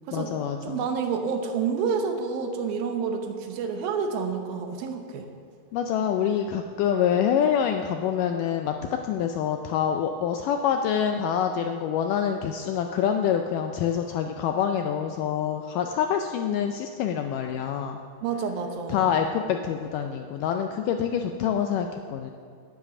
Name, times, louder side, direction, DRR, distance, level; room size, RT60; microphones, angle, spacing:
voice 1, 0.1-0.9 5.7-18.0 18.9-22.3, left 8 dB, 80° left, 5 dB, 1.9 m, -26 dB
voice 2, 0.7-5.3 18.2-19.1, right 6 dB, 80° right, 5 dB, 2.7 m, -29 dB
10.5 x 9.9 x 5.9 m, 2.3 s
omnidirectional pair, 4.3 m